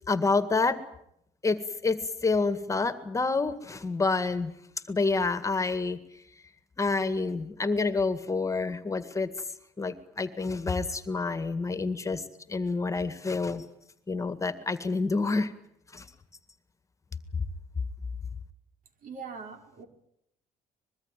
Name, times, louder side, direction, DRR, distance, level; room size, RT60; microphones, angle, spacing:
voice 1, 0.1-0.8 1.4-4.5 4.9-6.0 6.8-9.3 9.8-12.2 12.5-13.6 14.1-15.5 15.9-16.1, left 3 dB, 20° left, 11 dB, 1.9 m, -28 dB
voice 2, 19.0-19.9, right 5 dB, 65° right, 6 dB, 4.9 m, -41 dB
24.5 x 22.0 x 9.1 m, 0.75 s
cardioid pair, 115°, 15 cm